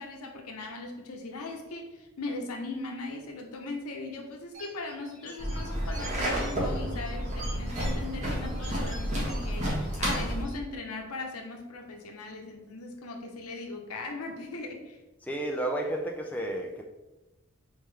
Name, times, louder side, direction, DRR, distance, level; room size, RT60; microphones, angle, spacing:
voice 1, 0.0-15.0, left 3 dB, 85° left, 3 dB, 0.8 m, -39 dB
sound 1, 4.5-10.6, right 2 dB, 65° right, 1.5 m, -47 dB
sound 2, 5.4-10.4, equal, 30° right, 1.3 m, -30 dB
voice 2, 15.3-16.8, right 1 dB, 5° left, 0 dB, 0.3 m, -31 dB
4.3 x 3.6 x 3.3 m, 1.0 s
head